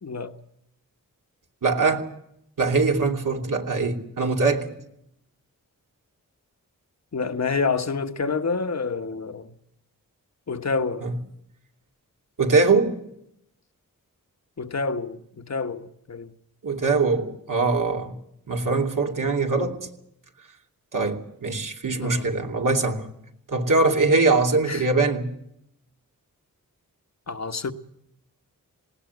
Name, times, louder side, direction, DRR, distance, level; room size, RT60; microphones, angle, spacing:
voice 1, 0.0-0.3 7.1-9.5 10.5-11.1 14.6-16.3 22.0-22.3 24.7-24.9 27.3-27.7, left 4 dB, 50° left, 1.5 m, -28 dB
voice 2, 1.6-2.1 2.6-4.7 11.0-11.1 12.4-13.0 16.6-18.1 18.5-19.9 20.9-23.1 23.5-25.3, right 3 dB, 65° right, 2.9 m, -22 dB
19.5 x 17.5 x 9.5 m
cardioid pair, 60°, 34 cm